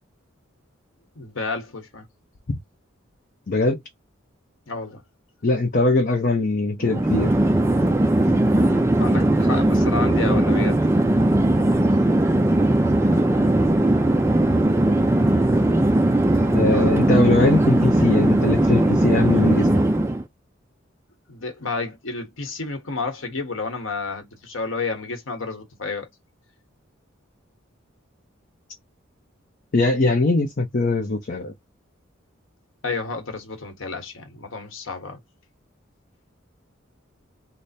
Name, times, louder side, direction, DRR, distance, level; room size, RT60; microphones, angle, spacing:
voice 1, 1.2-2.0 4.7-5.0 9.0-10.8 21.3-26.1 32.8-35.2, left 4 dB, 75° left, 1.1 m, -30 dB
voice 2, 3.5-3.8 5.4-7.3 16.5-19.7 29.7-31.5, left 2 dB, 45° left, 0.6 m, -21 dB
Chatter / Fixed-wing aircraft airplane, 6.8-20.2, right 1 dB, 15° right, 0.4 m, -19 dB
3.3 x 2.0 x 4.1 m
head